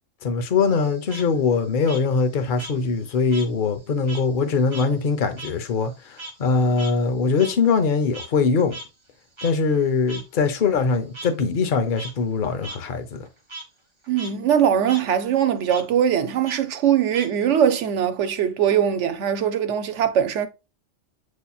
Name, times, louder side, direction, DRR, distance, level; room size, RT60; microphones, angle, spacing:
voice 1, 0.2-8.7 9.4-13.3, left 4 dB, 50° left, 0.8 m, -22 dB
Frog, 0.6-3.5 3.8-8.5 8.7-8.8 9.4-9.5 10.1-10.2 11.1-11.3 11.8-12.1 12.6-12.8 13.1-13.6 14.0-14.3 14.6-15.0 15.7-15.8 16.4-17.7, right 2 dB, 25° right, 1.1 m, -39 dB
voice 2, 14.1-20.5, right 9 dB, 75° right, 1.0 m, -21 dB
8.2 x 2.8 x 2.3 m
omnidirectional pair, 1.2 m